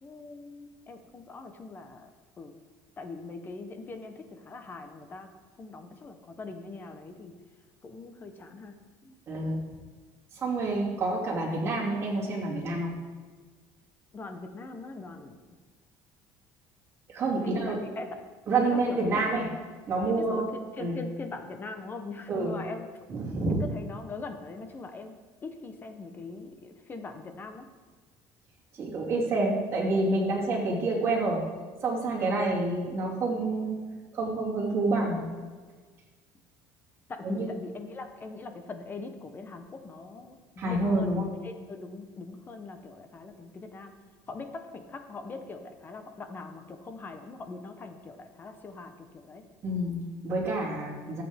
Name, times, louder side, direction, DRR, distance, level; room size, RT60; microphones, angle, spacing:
voice 1, 0.0-2.1 2.4-2.5 3.0-5.3 5.6-7.3 7.8-8.7 9.0-9.2 14.1-15.4 17.4-18.1 18.6-19.5 20.1-22.9 23.6-25.1 25.4-27.7 37.1-43.9 44.3-49.4, left 3 dB, 25° left, 7 dB, 0.9 m, -41 dB
voice 2, 9.3-9.6 10.3-12.9 17.1-17.8 18.5-19.5 19.9-20.5 20.8-21.0 22.3-22.6 23.1-23.6 28.7-31.4 31.8-33.8 34.1-35.2 37.2-37.5 40.6-41.3 49.6-51.2, right 2 dB, 30° right, -4 dB, 2.7 m, -28 dB
14.5 x 7.8 x 3.6 m, 1.4 s
cardioid pair, 140°, 8 cm